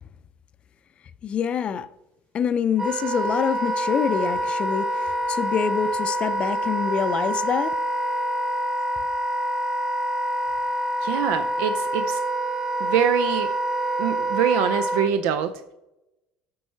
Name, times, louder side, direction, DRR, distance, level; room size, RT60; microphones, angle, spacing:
voice 1, 1.2-1.9 2.3-7.7, left 7 dB, 40° left, 0.5 m, -25 dB
Wind instrument woodwind instrument, 2.8-15.1, right 1 dB, 20° right, 2.1 m, -26 dB
voice 2, 11.0-12.2 12.8-13.5 14.0-15.5, right 8 dB, 80° right, 0.5 m, -24 dB
8.4 x 4.7 x 4.5 m
supercardioid pair, 110°, 3 cm